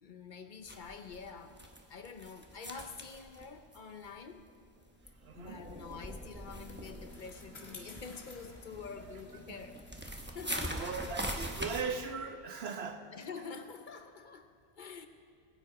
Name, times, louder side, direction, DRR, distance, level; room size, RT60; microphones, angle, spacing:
voice 1, 0.0-4.4 5.3-9.8 10.3-10.8 13.1-15.1, left 5 dB, 55° left, 8 dB, 0.8 m, -47 dB
sound 1, 0.6-4.5 4.8-11.8, right 1 dB, 10° right, 0.9 m, -43 dB
voice 2, 5.2-5.6 10.7-13.0, right 5 dB, 70° right, 6 dB, 1.1 m, -38 dB
Bicycle, 5.9-12.7, left 2 dB, 75° left, 2.3 m, -56 dB
20.5 x 9.4 x 4.8 m, 2.3 s
omnidirectional pair, 1.1 m